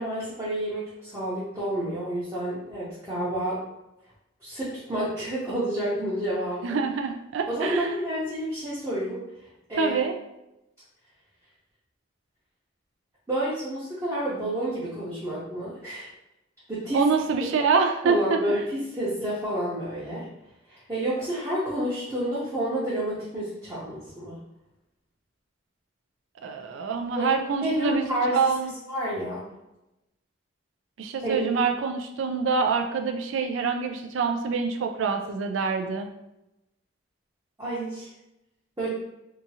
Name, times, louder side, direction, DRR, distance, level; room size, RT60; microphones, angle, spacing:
voice 1, 0.0-3.6 4.4-6.8 7.5-9.2 9.7-10.0 13.3-16.1 16.7-17.0 18.0-20.2 20.7-24.4 27.2-27.3 27.6-28.4 28.9-29.4 31.2-31.5 37.6-38.1 38.8-38.9, right 1 dB, 15° right, -10 dB, 0.7 m, -29 dB
voice 2, 6.6-7.9 9.8-10.1 16.9-18.6 26.4-28.1 28.3-28.7 31.0-36.1, right 5 dB, 85° right, 6 dB, 0.4 m, -26 dB
2.8 x 2.4 x 2.7 m, 0.91 s
head